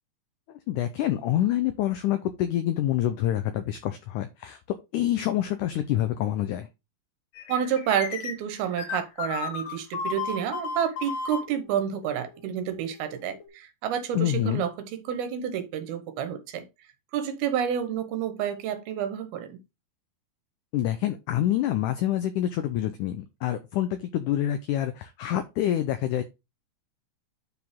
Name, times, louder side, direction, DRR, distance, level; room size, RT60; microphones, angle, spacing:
voice 1, 0.5-4.6 4.9-6.7 14.2-14.7 20.7-26.2, left 12 dB, 85° left, 1.7 m, -27 dB
sound 1, 7.3-13.5, left 5 dB, 60° left, 3.0 m, -35 dB
voice 2, 7.5-16.7 17.1-19.6, right 9 dB, 80° right, 3.0 m, -29 dB
9.4 x 4.9 x 3.6 m
omnidirectional pair, 4.5 m